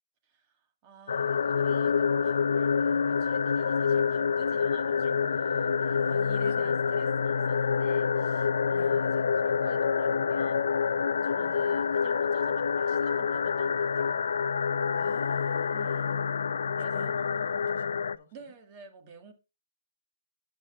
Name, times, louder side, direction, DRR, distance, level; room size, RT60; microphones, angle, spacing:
voice 1, 0.3-10.7 11.2-14.2 15.7-16.2 16.7-17.2 18.3-19.3, right 5 dB, 25° right, 1.7 m, -52 dB
sound 1, 1.1-18.2, left 6 dB, 70° left, 0.5 m, -27 dB
voice 2, 6.0-6.9 8.7-9.2 11.3-11.8 14.9-16.2 16.9-18.3, left 7 dB, 45° left, 1.5 m, -49 dB
12.0 x 7.8 x 2.4 m
hypercardioid pair, 150°, 0 cm